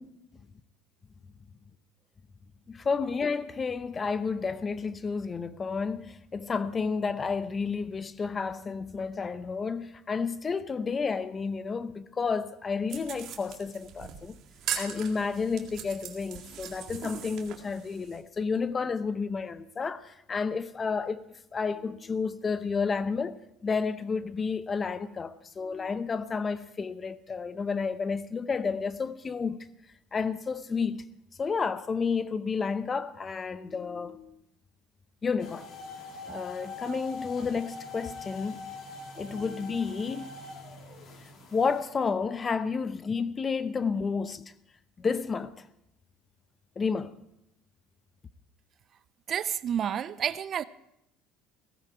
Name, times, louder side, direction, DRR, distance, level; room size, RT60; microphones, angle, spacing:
voice 1, 2.7-14.4 14.8-21.2 21.5-29.7 30.1-31.0 31.4-34.4 35.2-35.7 36.2-38.6 39.1-40.4 41.2-44.4 45.0-45.6 46.8-47.2, left 5 dB, 25° left, 0.8 m, -31 dB
sound 1, 12.9-18.2, right 9 dB, 60° right, 2.0 m, -40 dB
sound 2, 35.4-41.8, left 3 dB, 55° left, 2.9 m, -43 dB
voice 2, 49.3-50.6, right 9 dB, 45° right, 0.5 m, -30 dB
16.5 x 14.0 x 4.5 m
supercardioid pair, 100°, 0 cm